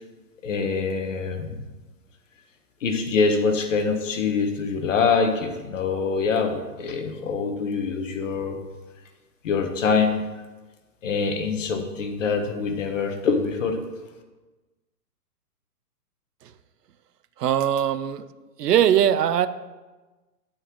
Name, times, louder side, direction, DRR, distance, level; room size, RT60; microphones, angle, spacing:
voice 1, 0.4-1.6 2.8-8.6 9.4-10.3 11.0-13.8, left 5 dB, 50° left, 5 dB, 1.4 m, -24 dB
voice 2, 17.4-18.2 18.6-19.5, right 10 dB, 70° right, 13 dB, 0.7 m, -20 dB
10.0 x 4.5 x 7.4 m, 1.2 s
hypercardioid pair, 165°, 49 cm